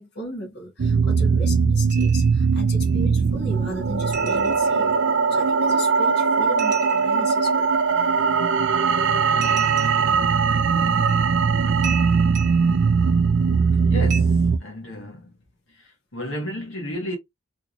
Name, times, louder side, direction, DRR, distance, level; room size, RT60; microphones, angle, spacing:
voice 1, 0.0-4.9 5.3-7.8, equal, 55° left, 1.5 m, -36 dB
sound 1, 0.8-14.6, right 5 dB, 65° right, 0.4 m, -20 dB
sound 2, 1.9-2.4 2.8-2.9 4.1-4.9 6.6-7.3 9.4-10.2 11.1-11.2 11.8-12.8 14.1-14.2, right 7 dB, 40° right, 1.3 m, -34 dB
voice 2, 13.9-15.4 15.7-17.2, left 1 dB, 85° left, 1.4 m, -33 dB
3.5 x 3.0 x 2.6 m
head